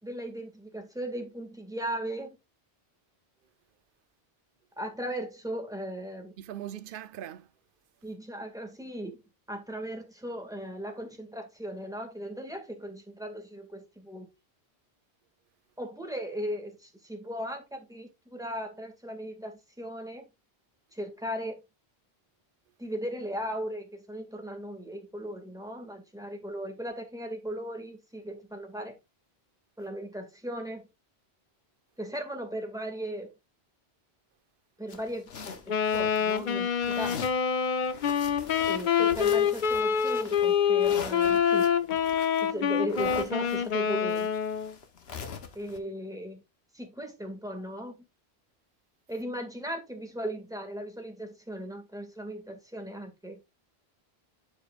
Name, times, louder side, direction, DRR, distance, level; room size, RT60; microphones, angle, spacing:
voice 1, 0.0-2.4 4.8-6.4 8.0-9.2 9.5-14.3 15.8-20.3 20.9-21.6 22.8-29.0 29.8-30.9 32.0-33.3 34.8-37.2 38.7-41.7 42.4-44.3 45.5-46.4 46.7-48.0 49.1-53.4, equal, 5° right, 2.0 m, -37 dB
voice 2, 6.4-7.5, right 11 dB, 60° right, 0.8 m, -40 dB
sound 1, 34.9-36.5 36.8-37.5 37.8-45.8, left 6 dB, 75° left, 1.3 m, -43 dB
Wind instrument woodwind instrument, 35.7-44.7, left 7 dB, 55° left, 0.7 m, -26 dB
11.5 x 5.2 x 2.5 m
omnidirectional pair, 1.1 m